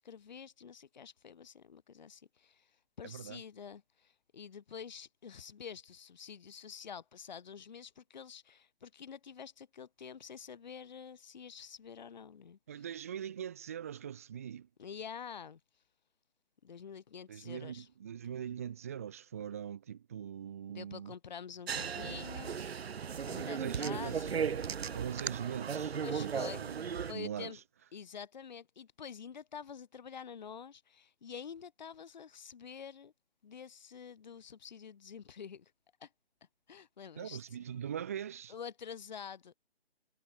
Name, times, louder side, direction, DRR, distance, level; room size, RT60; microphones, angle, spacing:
voice 1, 0.0-2.7 3.0-12.8 14.8-15.6 16.6-17.9 20.7-22.6 23.2-24.4 26.0-26.6 27.0-27.6 27.9-33.1 33.4-35.7 36.0-36.1 36.7-37.4 38.5-39.5, left 7 dB, 45° left, 1.7 m, -47 dB
voice 2, 3.0-3.4 12.7-14.7 17.3-21.1 23.6-27.6 37.2-38.5, right 9 dB, 15° right, 0.7 m, -42 dB
sound 1, 21.7-27.1, right 7 dB, 70° right, 0.7 m, -36 dB
figure-of-eight pair, 160°, 32 cm